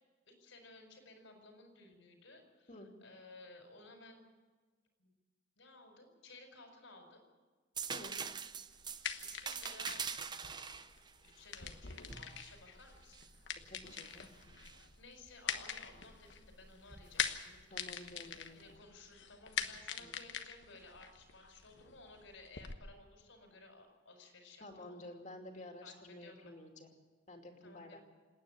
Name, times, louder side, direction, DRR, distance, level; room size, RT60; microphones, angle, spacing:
voice 1, 0.3-2.7 3.0-4.3 5.0-5.1 5.6-7.2 9.2-10.7 11.2-13.2 15.0-18.2 18.5-25.2 25.8-26.5 27.6-28.0, left 2 dB, 85° left, 4 dB, 4.8 m, -57 dB
sound 1, 7.8-13.4 13.9-14.9 16.9-17.1, right 6 dB, 20° right, 0.6 m, -44 dB
sound 2, 8.7-22.7, left 7 dB, 65° left, 1.2 m, -44 dB
voice 2, 13.7-14.3 17.7-18.6 20.0-20.1 24.6-26.9 27.3-28.0, left 1 dB, 40° left, 3 dB, 2.6 m, -51 dB
27.5 x 9.6 x 9.9 m, 1.4 s
head